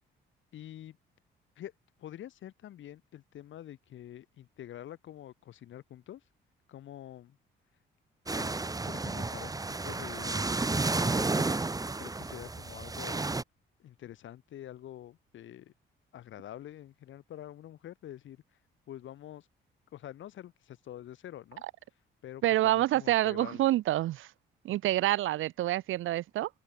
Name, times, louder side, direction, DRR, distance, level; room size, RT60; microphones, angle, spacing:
voice 1, 0.5-1.0 1.6-1.7 2.0-6.2 6.7-7.4 8.3-8.6 8.9-11.6 12.0-13.3 13.8-15.7 16.1-18.4 18.9-19.5 19.9-21.6 22.2-23.6, left 12 dB, 75° left, 6.7 m, -47 dB
sound 1, 8.3-13.4, right 3 dB, 20° right, 1.7 m, -32 dB
voice 2, 22.4-24.3 24.6-26.5, right 15 dB, 85° right, 3.7 m, -27 dB
open air
cardioid pair, 90°, 20 cm